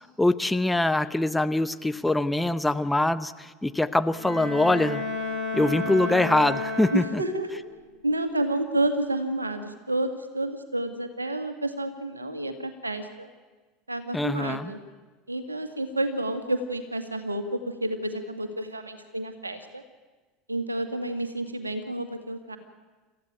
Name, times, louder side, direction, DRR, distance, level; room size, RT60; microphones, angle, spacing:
voice 1, 0.2-5.0 5.5-7.2 14.1-14.7, left 2 dB, 5° left, 12 dB, 0.8 m, -24 dB
Bowed string instrument, 4.1-7.5, left 3 dB, 85° left, 7.0 m, -32 dB
voice 2, 6.9-7.5 8.0-13.3 13.9-14.8 15.3-19.8 20.5-22.6, right 1 dB, 85° right, 8 dB, 2.0 m, -30 dB
27.0 x 14.5 x 9.1 m, 1.3 s
figure-of-eight pair, 75°, 0 cm